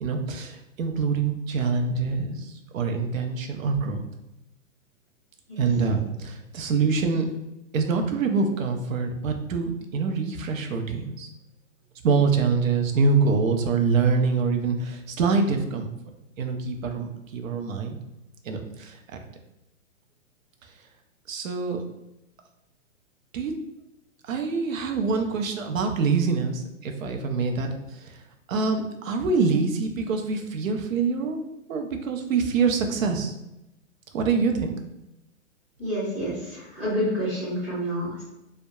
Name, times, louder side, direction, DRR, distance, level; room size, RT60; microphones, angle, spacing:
voice 1, 0.0-4.0 5.6-7.3 7.7-11.3 12.0-15.9 16.4-18.0 18.4-19.2 21.3-21.8 23.3-23.5 24.2-28.2 28.5-31.4 31.7-33.3 34.1-34.8, right 4 dB, 80° right, 4 dB, 0.6 m, -25 dB
voice 2, 35.8-38.2, equal, ahead, -17 dB, 0.4 m, -28 dB
2.7 x 2.1 x 2.2 m, 0.90 s
hypercardioid pair, 145°, 39 cm